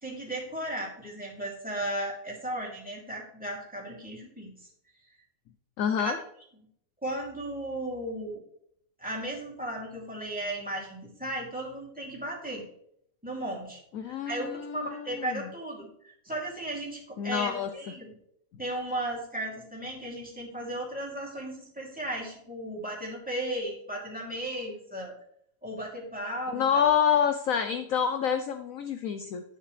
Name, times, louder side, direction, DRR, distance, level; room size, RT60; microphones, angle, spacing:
voice 1, 0.0-4.5 6.0-6.1 7.0-8.4 9.0-12.6 13.2-14.5 14.7-18.1 18.6-25.1 25.6-26.9, right 1 dB, 5° right, -3 dB, 2.9 m, -35 dB
voice 2, 5.8-6.2 13.9-15.5 17.2-17.7 26.5-29.4, left 8 dB, 65° left, 9 dB, 0.8 m, -27 dB
10.0 x 9.3 x 3.3 m, 0.70 s
omnidirectional pair, 1.9 m